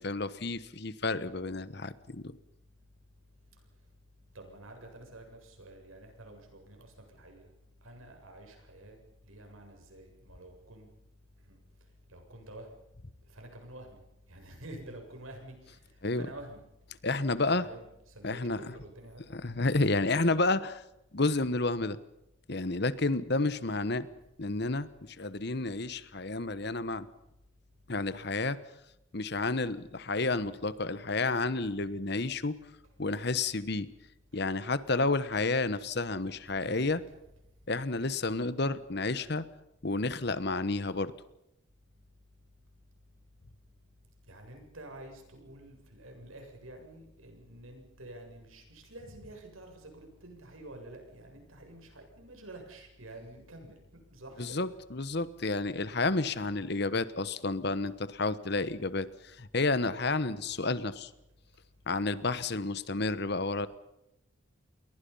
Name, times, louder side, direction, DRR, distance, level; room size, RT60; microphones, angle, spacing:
voice 1, 0.0-2.3 16.0-16.2 17.0-17.7 18.2-18.6 19.3-20.8 21.1-22.0 22.5-24.1 24.4-27.1 27.9-28.6 29.1-32.5 33.0-33.9 34.3-37.0 37.7-39.4 39.8-41.1 54.4-59.0 59.4-61.1 61.9-63.7, left 3 dB, 55° left, 15 dB, 1.2 m, -30 dB
voice 2, 4.3-7.4 7.8-10.9 11.4-11.6 12.1-12.7 13.3-14.0 14.3-16.6 17.6-19.2 36.2-36.9 44.3-53.8 54.1-54.7 55.9-56.3, right 1 dB, 85° right, 4 dB, 7.4 m, -49 dB
29.5 x 22.0 x 5.6 m, 0.85 s
head